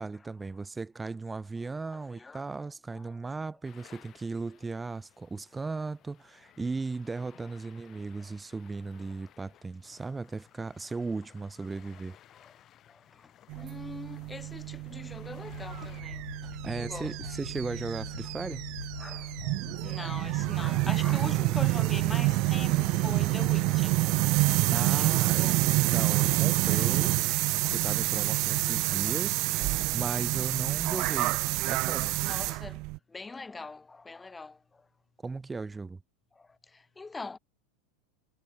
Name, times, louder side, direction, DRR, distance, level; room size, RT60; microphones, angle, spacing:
voice 1, 0.0-12.2 16.4-18.7 24.7-27.2 27.7-32.2 35.2-36.0, right 3 dB, 15° right, 4.3 m, -37 dB
voice 2, 1.9-2.5 2.9-3.2 8.2-8.3 12.3-12.5 12.9-16.3 16.7-17.4 19.0-24.5 24.9-25.6 26.8-26.9 27.3-27.7 28.8-29.2 29.6-30.0 30.8-31.0 32.2-32.8 33.1-34.9 36.3-37.4, left 3 dB, 15° left, 4.6 m, -43 dB
sound 1, 3.6-16.0, left 12 dB, 40° left, 4.5 m, -58 dB
sound 2, 13.5-33.0, right 23 dB, 50° right, 0.7 m, -28 dB
sound 3, 15.5-29.4, left 5 dB, 85° left, 0.6 m, -44 dB
figure-of-eight pair, 85°, 0 cm